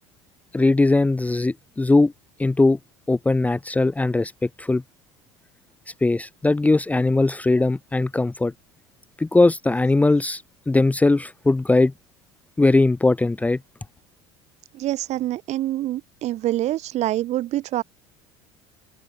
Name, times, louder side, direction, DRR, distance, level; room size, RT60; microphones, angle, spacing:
voice 1, 0.5-2.1 2.4-2.8 3.1-4.8 6.0-8.5 9.2-11.9 12.6-13.6, left 2 dB, 10° left, 0.7 m, -20 dB
voice 2, 14.7-17.8, right 14 dB, 55° right, 2.5 m, -26 dB
supercardioid pair, 90°, 14 cm